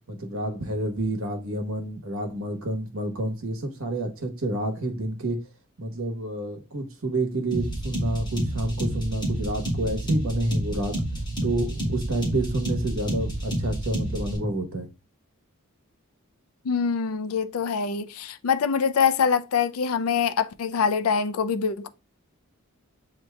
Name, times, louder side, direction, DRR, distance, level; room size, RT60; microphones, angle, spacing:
voice 1, 0.1-5.4 5.8-11.0 11.4-14.9, right 1 dB, 65° right, 1.1 m, -29 dB
sound 1, 7.5-14.4, right 1 dB, 20° left, 2.3 m, -29 dB
voice 2, 16.6-21.9, left 6 dB, 80° left, 0.4 m, -24 dB
8.4 x 2.8 x 2.2 m
head